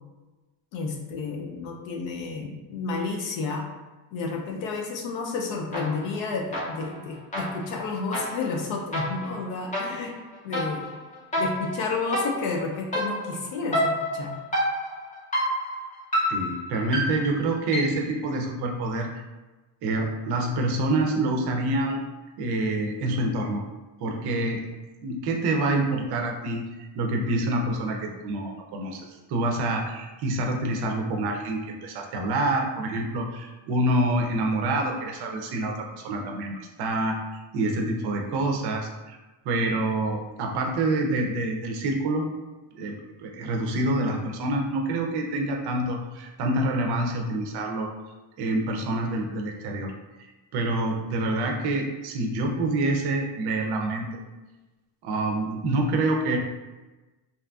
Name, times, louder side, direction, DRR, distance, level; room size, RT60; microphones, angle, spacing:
voice 1, 0.7-3.6 4.1-10.1 10.4-10.9 11.4-14.4, left 4 dB, 70° left, 1 dB, 0.5 m, -31 dB
sound 1, 5.7-6.2 6.5-18.1, equal, 20° left, 0.4 m, -30 dB
voice 2, 16.3-19.1 19.8-22.0 22.4-23.6 24.0-24.6 25.0-26.6 26.9-37.2 37.5-39.2 39.5-42.3 42.7-43.0 43.2-47.9 48.4-49.9 50.2-54.1 55.0-56.4, right 2 dB, 55° right, 2 dB, 0.5 m, -27 dB
2.7 x 2.4 x 2.2 m, 1.2 s
cardioid pair, 170°, 47 cm